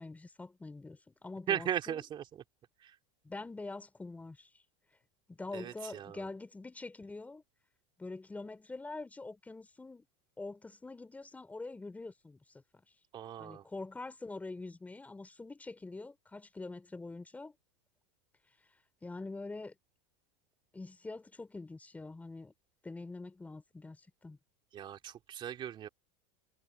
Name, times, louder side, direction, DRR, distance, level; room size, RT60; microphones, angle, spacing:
voice 1, 0.0-2.0 3.2-4.5 5.3-7.4 8.0-10.1 10.4-12.8 13.4-17.5 19.0-19.8 20.7-22.5 22.8-24.4, left 3 dB, 10° left, 3.6 m, -45 dB
voice 2, 1.5-2.4 2.8-3.0 5.5-6.3 13.1-13.7 24.7-25.9, right 10 dB, 35° right, 2.8 m, -38 dB
supercardioid pair, 115°, 14 cm